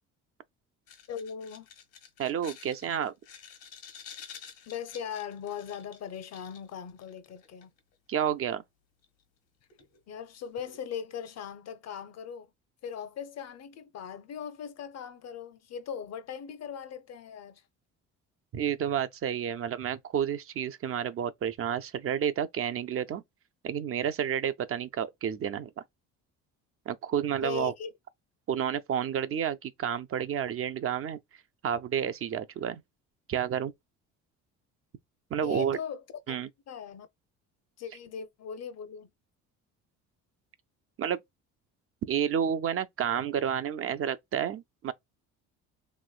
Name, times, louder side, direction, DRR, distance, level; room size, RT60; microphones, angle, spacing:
sound 1, 0.9-7.8 9.0-9.1 9.7-10.0 10.6-10.8, left 7 dB, 75° left, 1.3 m, -50 dB
voice 1, 1.1-1.7 4.7-7.7 10.1-12.5 12.8-17.6 27.3-27.9 35.4-36.0 36.3-36.4 36.7-37.1 37.8-39.1, left 7 dB, 50° left, 0.7 m, -39 dB
voice 2, 2.2-3.1 8.1-8.6 18.5-23.2 23.6-25.7 26.9-27.7 28.5-31.2 31.6-32.8 33.3-33.7 35.3-35.8 36.3-36.5 41.0-41.2 42.1-44.9, right 9 dB, 40° right, 0.5 m, -30 dB
3.1 x 3.0 x 2.3 m
supercardioid pair, 75°, 34 cm